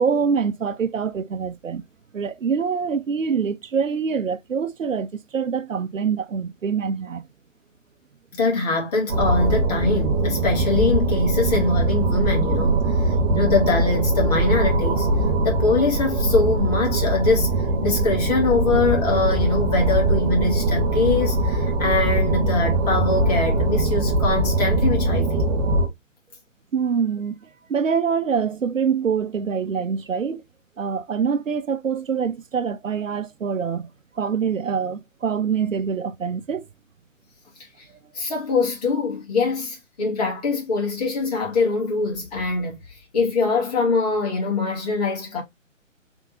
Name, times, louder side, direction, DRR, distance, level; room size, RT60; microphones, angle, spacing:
voice 1, 0.0-1.8 2.1-7.2 26.7-27.4 27.7-30.4 30.8-33.9 34.2-36.7, right 6 dB, 75° right, 0.6 m, -25 dB
voice 2, 8.3-15.1 15.4-17.5 17.8-25.5 38.1-42.8 43.1-45.4, left 3 dB, 30° left, 1.7 m, -23 dB
sound 1, 9.1-25.9, right 2 dB, 20° right, 0.9 m, -21 dB
3.6 x 3.5 x 2.9 m
figure-of-eight pair, 135°, 39 cm